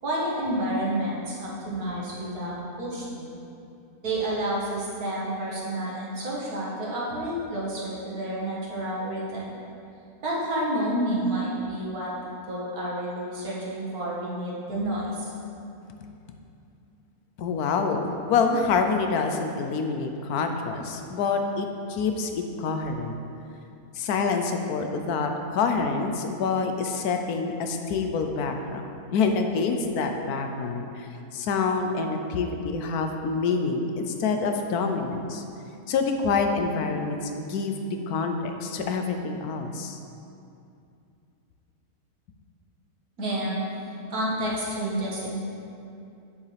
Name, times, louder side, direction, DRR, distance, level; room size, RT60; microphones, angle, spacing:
voice 1, 0.0-3.3 4.0-9.4 10.2-12.1 12.5-15.3 43.2-45.4, right 1 dB, 70° right, -6 dB, 2.1 m, -30 dB
voice 2, 17.4-23.2 23.9-35.4 35.9-37.7 38.1-40.0, left 4 dB, 80° left, 5 dB, 1.2 m, -27 dB
8.1 x 7.2 x 3.4 m, 2.6 s
omnidirectional pair, 1.6 m